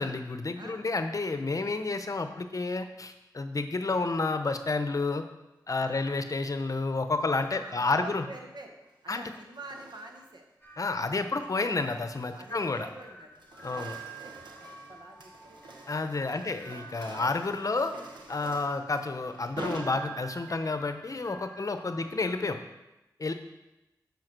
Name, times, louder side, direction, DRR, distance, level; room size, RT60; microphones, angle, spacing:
voice 1, 0.0-5.2 5.7-8.2 9.1-9.2 10.8-12.9 13.6-14.0 15.9-17.9 18.3-22.6 23.2-23.3, left 3 dB, 50° left, 8 dB, 0.7 m, -30 dB
voice 2, 0.5-0.9 5.8-6.0 7.2-8.7 9.0-10.4 10.9-11.7 12.3-13.3 13.6-13.8 14.2-14.3 14.6-15.6 16.3-16.6 17.0-17.3 21.4-22.1, right 2 dB, 70° right, 3 dB, 1.2 m, -47 dB
sound 1, 7.2-7.7 8.8-10.4 10.8-11.1 11.6-13.0 13.3-20.6, right 2 dB, 90° right, 1.0 m, -46 dB
sound 2, 10.6-22.5, right 4 dB, 20° left, 2.0 m, -49 dB
7.6 x 5.2 x 6.1 m, 0.98 s
cardioid pair, 55°, 8 cm